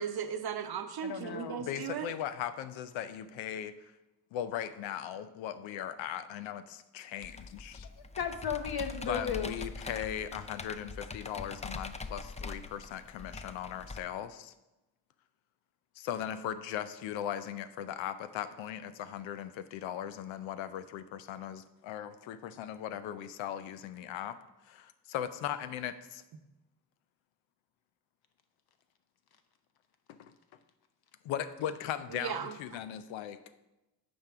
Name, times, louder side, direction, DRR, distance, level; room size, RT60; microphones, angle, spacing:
voice 1, 0.0-2.1 32.1-32.5, right 7 dB, 55° right, 8 dB, 0.9 m, -36 dB
voice 2, 1.0-1.6 8.0-9.6, left 7 dB, 55° left, 7 dB, 1.0 m, -35 dB
voice 3, 1.6-3.8 4.3-7.9 9.1-14.5 16.0-24.4 24.7-26.2 30.1-30.3 31.2-33.4, left 10 dB, 85° left, 12 dB, 0.6 m, -38 dB
Computer keyboard, 7.2-14.0, left 3 dB, 15° left, 0.5 m, -43 dB
9.2 x 5.2 x 3.6 m, 0.99 s
supercardioid pair, 55°, 45 cm